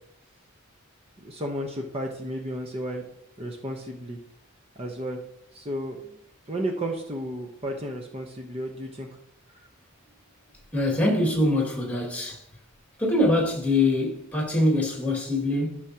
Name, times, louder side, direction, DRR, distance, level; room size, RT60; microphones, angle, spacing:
voice 1, 1.2-3.0 3.4-4.2 4.8-5.2 5.5-6.2 6.5-9.1, right 1 dB, 30° right, 1.0 m, -33 dB
voice 2, 10.7-12.4 13.0-15.8, left 1 dB, 10° left, 2.3 m, -24 dB
13.5 x 6.3 x 2.9 m
head